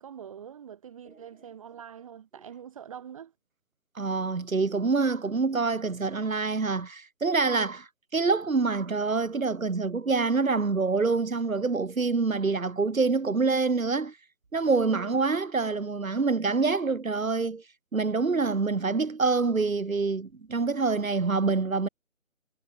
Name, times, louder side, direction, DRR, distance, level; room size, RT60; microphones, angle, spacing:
voice 1, 0.0-3.3 14.9-15.2, right 8 dB, 25° right, 4.4 m, -44 dB
voice 2, 4.0-14.1 14.5-17.6 17.9-21.9, right 4 dB, 75° right, 3.5 m, -26 dB
figure-of-eight pair, 170°, 41 cm